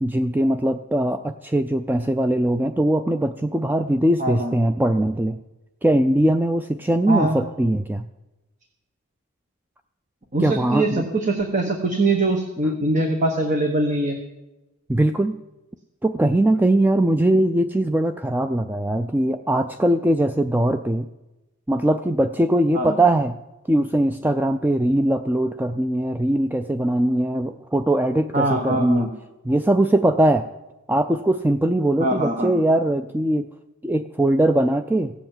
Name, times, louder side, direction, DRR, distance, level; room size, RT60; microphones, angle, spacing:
voice 1, 0.0-5.4 5.8-8.1 10.4-11.1 14.9-15.4 16.0-21.1 21.7-23.4 23.7-29.1 29.4-30.5 30.9-33.5 33.8-35.1, right 1 dB, 10° right, 9 dB, 0.4 m, -21 dB
voice 2, 4.2-4.5 7.1-7.4 10.3-14.2 22.7-23.0 28.3-29.1 32.0-32.5, right 2 dB, 35° right, 3 dB, 1.3 m, -22 dB
16.5 x 7.9 x 7.4 m, 1.0 s
head